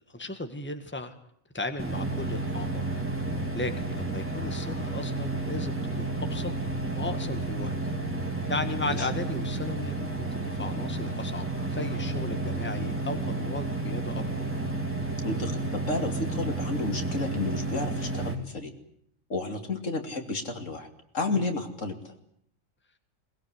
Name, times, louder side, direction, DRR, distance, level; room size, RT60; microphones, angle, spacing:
voice 1, 0.1-1.1 1.5-2.9 3.5-6.5 6.9-7.7 8.5-14.5 21.3-21.5, left 2 dB, 10° left, 7 dB, 1.9 m, -36 dB
sound 1, 1.8-18.4, right 2 dB, 10° right, 3.1 m, -31 dB
voice 2, 15.2-18.7 19.3-20.9 21.1-22.1, left 3 dB, 65° left, 5 dB, 3.1 m, -32 dB
22.0 x 21.0 x 9.8 m, 0.68 s
omnidirectional pair, 1.4 m